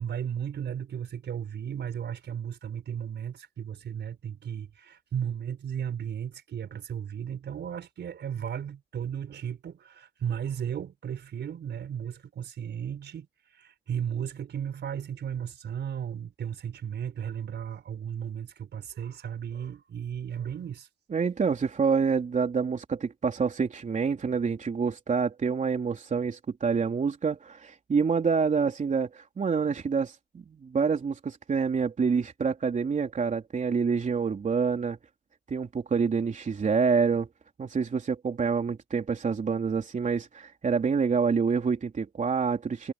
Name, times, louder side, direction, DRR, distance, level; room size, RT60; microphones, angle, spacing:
voice 1, 0.0-13.3 13.5-20.9, right 8 dB, 60° right, 4.6 m, -35 dB
voice 2, 21.1-35.0 35.5-37.3 37.6-42.9, right 5 dB, 40° right, 3.6 m, -27 dB
cardioid pair, 90°, 20 cm